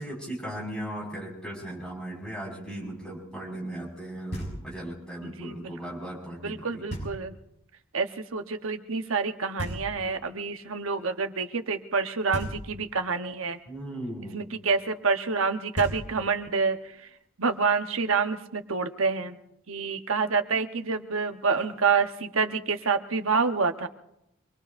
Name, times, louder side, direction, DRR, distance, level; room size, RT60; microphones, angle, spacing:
voice 1, 0.0-6.8 13.7-14.5, right 1 dB, 5° left, -3 dB, 5.6 m, -37 dB
Knock, 4.3-5.0 6.9-7.6 9.6-10.4 12.3-13.1 15.4-15.5 15.7-16.6, right 1 dB, 50° left, 6.2 m, -37 dB
voice 2, 5.2-5.7 6.4-7.4 7.9-13.6 14.3-17.1 17.4-19.4 19.7-23.9, right 5 dB, 85° right, 7 dB, 1.1 m, -27 dB
26.0 x 21.0 x 2.6 m, 0.84 s
head